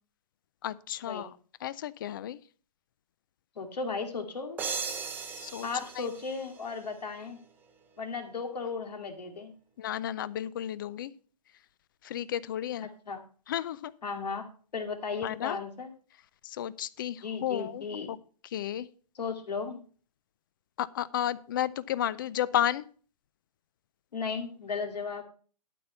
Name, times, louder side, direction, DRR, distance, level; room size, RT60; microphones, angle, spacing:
voice 1, 0.6-1.3 1.6-2.4 5.4-5.7 6.0-6.1 9.8-11.1 12.0-12.9 13.5-13.9 15.2-15.6 16.4-18.2 18.5-18.9 20.8-22.9, left 11 dB, 30° left, 19 dB, 0.4 m, -32 dB
voice 2, 3.6-4.6 5.6-7.4 8.0-9.5 13.1-13.2 14.0-14.4 14.7-15.9 17.2-18.1 19.1-19.8 24.1-25.2, left 5 dB, 80° left, 4 dB, 2.5 m, -35 dB
sound 1, 4.6-7.2, right 5 dB, 10° right, 0.7 m, -38 dB
12.5 x 4.4 x 6.8 m, 0.43 s
hypercardioid pair, 155°, 21 cm